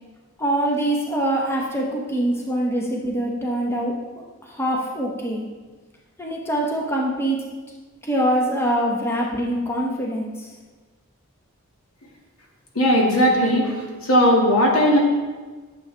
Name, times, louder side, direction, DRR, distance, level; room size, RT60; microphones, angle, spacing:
voice 1, 0.4-4.0 4.4-5.4 6.2-7.4 8.0-10.5, right 1 dB, 10° left, -2 dB, 0.9 m, -24 dB
voice 2, 12.8-15.0, equal, 80° left, -1 dB, 1.9 m, -18 dB
12.0 x 7.2 x 3.3 m, 1.4 s
head